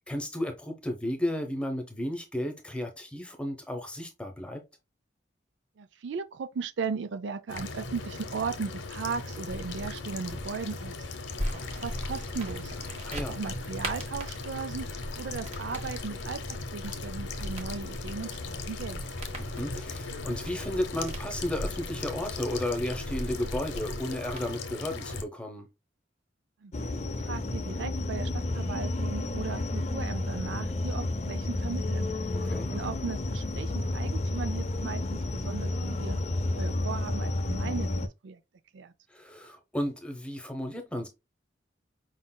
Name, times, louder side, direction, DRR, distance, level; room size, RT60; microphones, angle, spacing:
voice 1, 0.1-4.6 13.0-13.4 19.4-25.7 32.3-32.7 39.1-41.1, left 1 dB, 5° left, 0.8 m, -33 dB
voice 2, 5.8-11.1 11.5-12.7 13.3-19.0 26.6-26.9 27.2-32.1 32.7-36.2 36.5-38.4 38.7-38.9, right 5 dB, 70° right, 0.4 m, -37 dB
sound 1, 7.5-25.2, left 3 dB, 75° left, 0.8 m, -38 dB
sound 2, 11.4-24.5, equal, 35° right, 1.2 m, -41 dB
sound 3, 26.7-38.1, left 2 dB, 35° left, 0.4 m, -31 dB
5.0 x 3.8 x 2.2 m
head